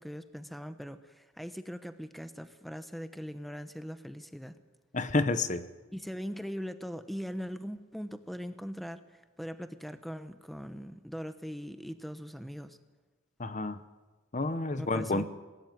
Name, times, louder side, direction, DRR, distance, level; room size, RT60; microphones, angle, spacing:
voice 1, 0.0-4.6 5.9-12.8 14.8-15.2, equal, ahead, 10 dB, 0.9 m, -41 dB
voice 2, 4.9-5.6 13.4-13.8 14.3-15.2, left 2 dB, 40° left, 12 dB, 1.0 m, -29 dB
26.5 x 19.0 x 9.3 m, 1.3 s
head